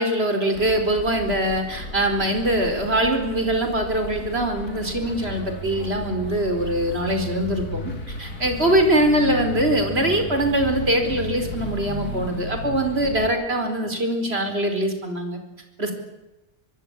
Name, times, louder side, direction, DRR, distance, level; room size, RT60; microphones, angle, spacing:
voice 1, 0.0-7.9 8.2-15.4 15.8-15.9, right 1 dB, 40° right, 6 dB, 5.0 m, -23 dB
sound 1, 0.5-13.3, left 1 dB, 80° left, 3.2 m, -34 dB
25.0 x 22.5 x 9.1 m, 1.0 s
omnidirectional pair, 1.6 m